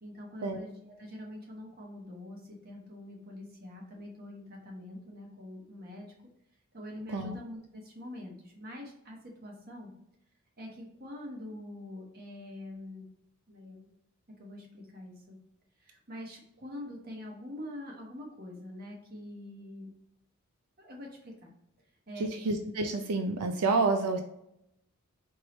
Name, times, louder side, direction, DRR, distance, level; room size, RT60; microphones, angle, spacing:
voice 1, 0.0-6.1 6.7-9.9 10.6-13.0 13.5-13.9 14.4-15.4 15.8-19.9 20.8-21.5 22.1-22.3, left 1 dB, 45° right, 0 dB, 1.1 m, -45 dB
voice 2, 22.2-24.2, right 3 dB, 90° right, 5 dB, 0.5 m, -29 dB
4.6 x 3.1 x 3.0 m, 0.80 s
head